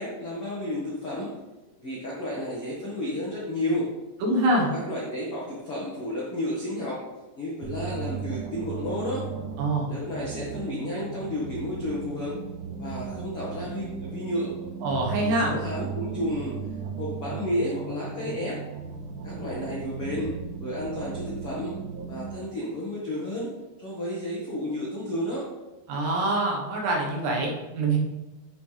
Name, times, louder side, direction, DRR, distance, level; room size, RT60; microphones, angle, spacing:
voice 1, 0.0-1.3 1.8-3.9 4.5-7.0 7.4-9.3 9.9-12.4 12.8-14.5 15.2-16.5 17.0-18.6 19.2-21.8 22.1-23.5 23.8-25.5, left 1 dB, 80° left, -6 dB, 1.2 m, -32 dB
voice 2, 4.2-4.7 9.6-9.9 14.8-15.5 25.9-28.0, right 2 dB, 70° right, -1 dB, 3.3 m, -25 dB
sound 1, 7.6-22.3, right 6 dB, 90° right, 3.6 m, -36 dB
11.0 x 6.2 x 3.4 m, 1.1 s
omnidirectional pair, 5.4 m